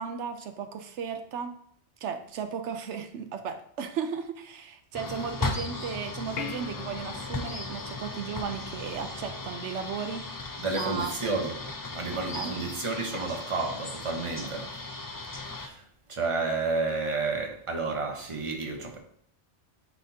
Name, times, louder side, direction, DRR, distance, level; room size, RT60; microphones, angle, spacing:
voice 1, 0.0-1.5 2.0-10.2 10.7-11.1 12.3-12.5 14.4-14.7, right 6 dB, 80° right, 0.9 m, -35 dB
sound 1, 4.9-15.7, left 3 dB, 35° left, 0.3 m, -37 dB
sound 2, 5.2-15.4, left 1 dB, 15° left, 1.1 m, -47 dB
sound 3, 6.4-9.1 13.1-13.2, left 7 dB, 65° left, 0.8 m, -42 dB
voice 2, 10.6-11.6 11.9-14.7 15.5-15.8 16.1-19.0, right 3 dB, 30° right, 1.1 m, -31 dB
9.8 x 4.2 x 2.8 m
omnidirectional pair, 1.2 m